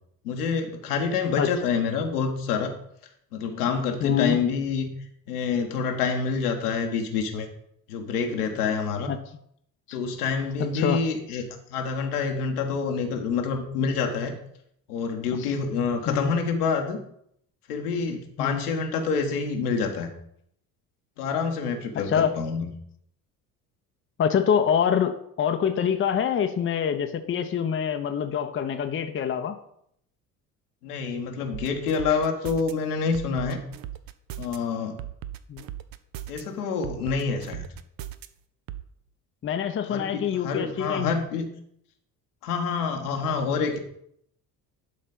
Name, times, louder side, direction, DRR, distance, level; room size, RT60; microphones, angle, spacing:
voice 1, 0.2-2.7 3.3-4.9 5.3-7.5 7.9-9.1 9.9-14.4 14.9-17.0 17.7-20.1 21.2-22.7 30.8-33.6 34.4-35.0 36.3-37.6 39.9-41.5 42.4-43.8, left 5 dB, 70° left, 3 dB, 1.4 m, -27 dB
voice 2, 4.0-4.4 9.1-9.2 9.9-10.0 10.7-11.0 15.4-15.5 16.1-16.3 18.4-18.6 21.9-22.3 24.2-29.6 35.5-35.6 39.4-41.1, left 8 dB, 25° left, 7 dB, 0.8 m, -25 dB
sound 1, 31.5-32.7 33.1-34.6 35.0-36.4 36.8-38.3 38.7-38.8, right 12 dB, 45° right, 0.7 m, -37 dB
11.5 x 4.2 x 5.2 m, 0.71 s
figure-of-eight pair, 55°, 47 cm